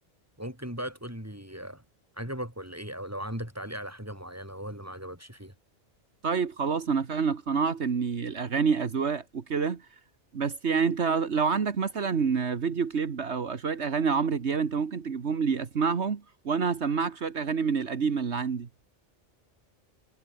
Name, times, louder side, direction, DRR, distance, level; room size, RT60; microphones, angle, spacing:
voice 1, 0.4-1.8 2.2-5.5, equal, 15° right, 6.4 m, -38 dB
voice 2, 6.2-9.9 10.3-18.7, right 5 dB, 70° right, 1.8 m, -27 dB
omnidirectional pair, 1.2 m